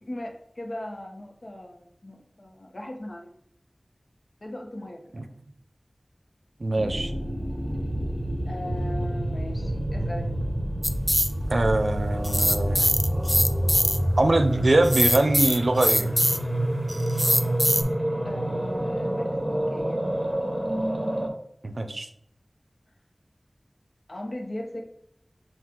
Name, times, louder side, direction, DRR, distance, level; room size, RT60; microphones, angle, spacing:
voice 1, 0.0-3.3 4.4-5.2 8.5-10.4 18.2-20.0 24.1-24.8, left 1 dB, 70° left, 1 dB, 0.9 m, -38 dB
voice 2, 6.6-7.1 11.5-12.9 14.2-16.1 21.6-22.1, right 2 dB, 75° right, 6 dB, 0.4 m, -23 dB
sound 1, 6.8-21.3, right 1 dB, 20° right, 0.9 m, -28 dB
sound 2, 10.8-11.3 12.2-14.0 14.8-16.5 16.9-17.8, equal, 10° left, 0.4 m, -22 dB
5.9 x 2.4 x 3.7 m, 0.70 s
wide cardioid pair, 50°, 0 cm